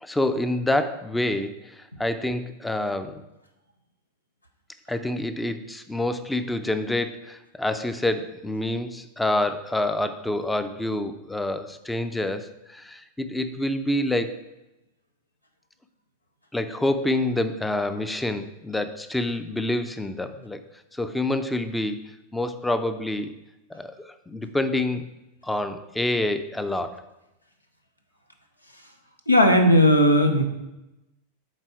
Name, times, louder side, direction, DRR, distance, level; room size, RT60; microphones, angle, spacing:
voice 1, 0.0-3.2 4.9-14.4 16.5-20.6 20.9-23.3 23.7-25.1 25.4-27.0, left 1 dB, 5° left, 10 dB, 0.5 m, -27 dB
voice 2, 29.3-30.4, equal, 85° left, 5 dB, 0.7 m, -16 dB
7.4 x 4.1 x 4.6 m, 0.95 s
figure-of-eight pair, 90°, 0 cm